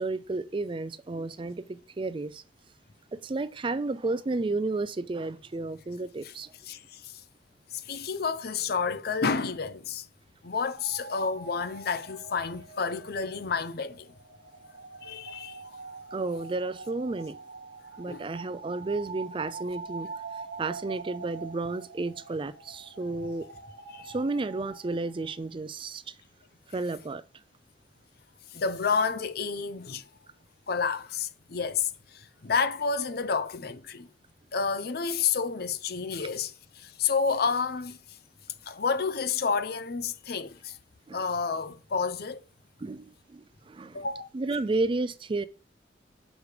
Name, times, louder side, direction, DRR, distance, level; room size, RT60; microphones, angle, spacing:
voice 1, 0.0-2.4 3.1-6.5 16.1-17.4 18.0-20.1 20.6-23.5 24.0-26.1 26.7-27.2 41.1-41.2 42.8-44.1 44.3-45.5, right 3 dB, 30° right, 0.4 m, -32 dB
voice 2, 6.7-7.2 7.7-10.1 10.4-14.1 15.0-15.6 18.1-18.3 23.9-24.1 28.5-30.1 30.7-34.1 34.5-38.2 38.7-40.8 41.1-42.4 43.9-44.3, left 5 dB, 60° left, 0.6 m, -30 dB
sound 1, 10.7-25.4, right 4 dB, 60° right, 1.5 m, -44 dB
6.5 x 5.0 x 4.9 m
head